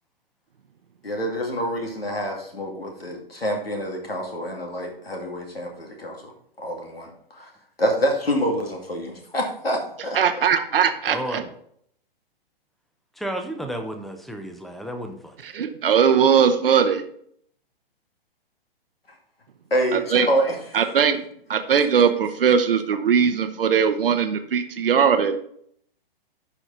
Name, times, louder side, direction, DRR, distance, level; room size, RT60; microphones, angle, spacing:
voice 1, 1.0-6.3 6.6-7.5 7.8-10.2 19.7-20.6, equal, 90° left, 2 dB, 2.4 m, -26 dB
voice 2, 10.1-11.4 15.4-17.0 19.9-20.3 20.7-21.2 21.5-25.4, right 7 dB, 70° right, 7 dB, 0.9 m, -20 dB
voice 3, 11.1-11.5 13.2-15.3, right 1 dB, ahead, 6 dB, 0.7 m, -32 dB
11.5 x 4.9 x 3.9 m, 0.67 s
figure-of-eight pair, 120°, 29 cm